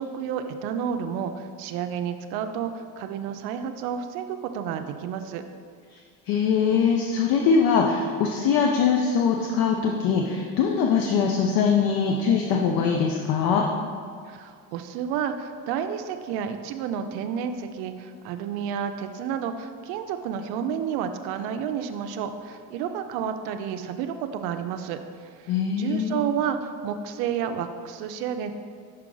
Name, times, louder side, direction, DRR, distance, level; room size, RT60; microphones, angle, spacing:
voice 1, 0.0-5.4 14.3-28.5, right 8 dB, 85° right, 7 dB, 0.5 m, -31 dB
voice 2, 6.3-13.7 25.5-26.2, left 6 dB, 70° left, 1 dB, 0.6 m, -22 dB
5.8 x 4.8 x 3.8 m, 2.1 s
cardioid pair, 120°, 36 cm